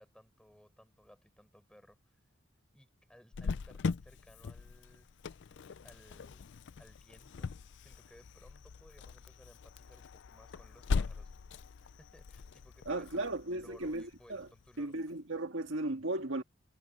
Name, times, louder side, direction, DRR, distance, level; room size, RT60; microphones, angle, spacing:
voice 1, 0.0-2.2 2.7-5.1 5.8-6.5 6.8-11.3 11.8-15.0, equal, 5° left, 7.3 m, -60 dB
Cricket, 3.3-14.8, left 4 dB, 60° left, 0.4 m, -40 dB
voice 2, 12.9-14.5 14.8-16.4, right 2 dB, 65° right, 1.8 m, -36 dB
head